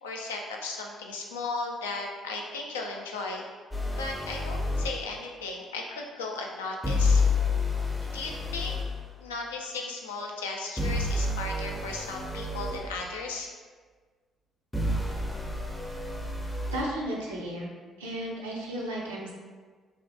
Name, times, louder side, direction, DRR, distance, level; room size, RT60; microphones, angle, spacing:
voice 1, 0.0-3.4 4.0-7.2 8.0-8.8 9.2-13.5, left 3 dB, 80° left, 0 dB, 0.3 m, -36 dB
sound 1, 3.7-5.0 6.8-8.9 10.8-12.9 14.7-16.8, left 3 dB, 10° left, 0.5 m, -29 dB
voice 2, 16.7-17.7 18.0-19.3, right 1 dB, 80° right, -3 dB, 0.5 m, -34 dB
3.2 x 2.2 x 2.7 m, 1.5 s
figure-of-eight pair, 45°, 0 cm